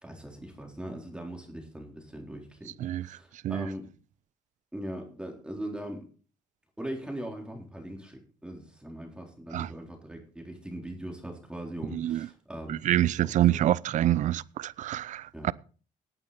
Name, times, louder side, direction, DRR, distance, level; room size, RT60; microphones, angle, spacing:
voice 1, 0.0-2.7 3.0-3.9 4.7-6.0 6.8-13.7 15.3-15.5, right 1 dB, 5° right, 3.8 m, -40 dB
voice 2, 11.9-12.3 12.7-15.5, right 13 dB, 65° right, 0.5 m, -26 dB
18.0 x 9.0 x 4.2 m
cardioid pair, 85°, 14 cm